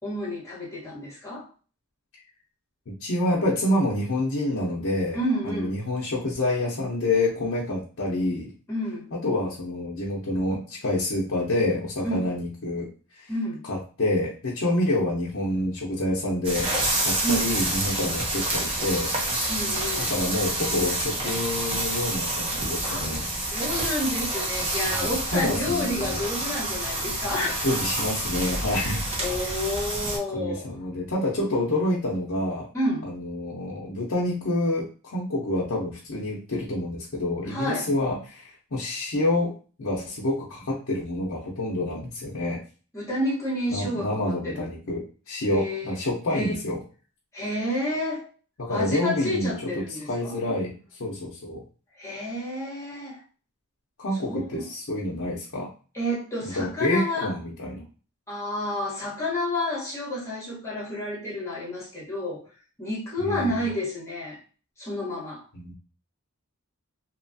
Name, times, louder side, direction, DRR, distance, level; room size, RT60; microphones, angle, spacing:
voice 1, 0.0-1.5 5.1-5.7 8.7-9.1 12.0-12.3 13.3-13.7 17.2-17.5 18.0-18.2 19.5-20.1 22.8-23.0 23.5-27.7 28.8-30.7 32.7-33.1 37.5-37.9 42.9-44.7 45.5-46.0 46.3-46.6 47.3-48.3 48.7-50.4 52.0-53.2 54.2-54.7 55.9-57.3 58.3-62.5 62.8-64.4 64.8-65.4, left 1 dB, 15° left, -7 dB, 1.1 m, -30 dB
voice 2, 2.9-5.2 5.4-8.5 9.1-13.3 13.7-16.7 17.0-19.1 20.1-23.3 24.9-26.2 27.6-29.0 29.4-29.6 30.3-32.7 33.0-39.5 39.8-42.6 43.7-46.8 48.6-50.7 51.0-51.6 54.0-55.7 56.4-57.8 63.2-63.7 65.5-65.7, left 1 dB, 60° left, -5 dB, 0.6 m, -28 dB
sound 1, 16.4-30.2, right 1 dB, 25° right, 0.6 m, -28 dB
2.9 x 2.3 x 2.6 m, 0.38 s
head